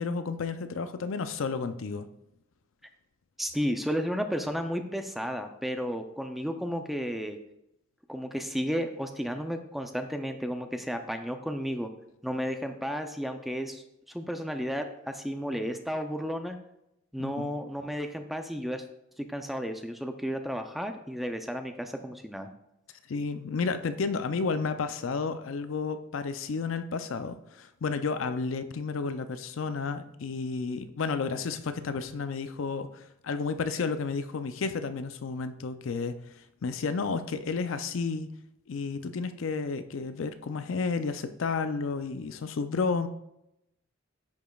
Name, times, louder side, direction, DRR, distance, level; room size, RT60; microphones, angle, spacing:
voice 1, 0.0-2.1 17.2-17.5 23.1-36.2 36.6-38.3 38.7-43.1, left 4 dB, 75° left, 10 dB, 0.5 m, -32 dB
voice 2, 3.4-7.4 8.1-11.9 12.2-13.8 14.1-16.6 17.1-18.8 19.2-22.5, equal, ahead, 6 dB, 0.4 m, -33 dB
10.5 x 5.1 x 2.3 m, 0.83 s
head